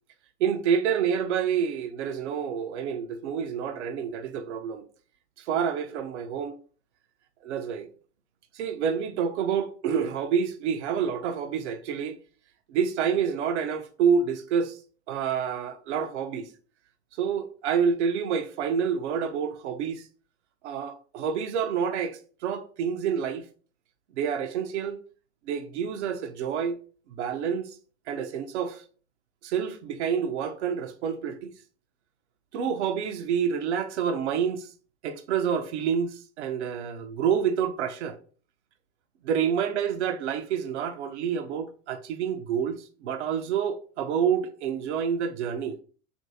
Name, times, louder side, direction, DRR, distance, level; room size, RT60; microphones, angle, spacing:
voice 1, 0.4-4.8 5.4-6.5 7.4-7.9 8.5-12.2 12.7-14.8 15.1-16.5 17.2-20.1 20.6-23.5 24.2-25.0 25.5-26.8 27.1-27.8 28.1-28.8 29.4-31.5 32.5-34.7 35.0-38.2 39.2-45.8, right 7 dB, 70° right, 0.5 m, -28 dB
2.9 x 2.6 x 2.7 m
hypercardioid pair, 80°, 35 cm